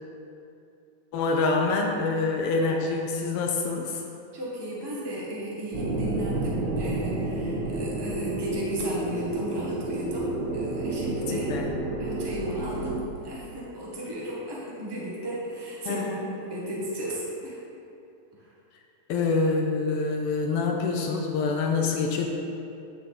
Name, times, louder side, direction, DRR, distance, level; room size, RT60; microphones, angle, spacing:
voice 1, 1.1-4.0 11.3-11.8 15.8-16.2 19.1-22.3, left 3 dB, 85° left, 1 dB, 1.2 m, -26 dB
voice 2, 4.3-11.5 12.0-16.0 16.5-17.6 18.3-18.5, equal, 20° right, -5 dB, 0.7 m, -35 dB
sound 1, 5.7-13.0, right 2 dB, 70° right, 2.6 m, -30 dB
9.6 x 6.7 x 4.1 m, 2.6 s
omnidirectional pair, 3.4 m